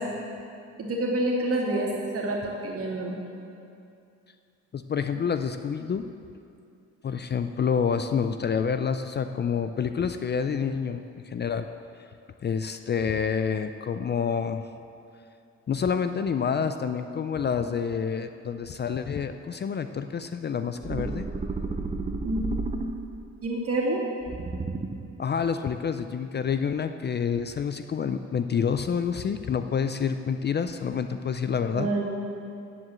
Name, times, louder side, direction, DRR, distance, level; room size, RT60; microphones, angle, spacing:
voice 1, 0.8-3.2 22.2-22.4 23.4-24.0 31.7-32.1, right 2 dB, 50° right, -3 dB, 2.6 m, -27 dB
voice 2, 4.7-6.1 7.0-11.7 12.4-14.6 15.7-21.3 25.2-31.9, left 6 dB, 35° left, 9 dB, 0.5 m, -28 dB
sound 1, 20.8-23.3 24.2-25.2, right 3 dB, 20° right, 0.7 m, -32 dB
9.7 x 7.8 x 7.7 m, 2.5 s
cardioid pair, 90°, 30 cm